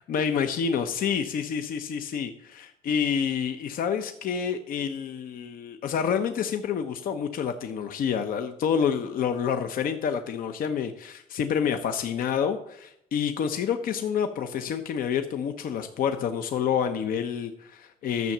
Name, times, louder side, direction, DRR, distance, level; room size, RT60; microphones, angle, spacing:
voice 1, 0.1-18.3, left 7 dB, 60° left, 7 dB, 0.8 m, -28 dB
12.0 x 6.7 x 7.2 m, 0.76 s
cardioid pair, 145°, 17 cm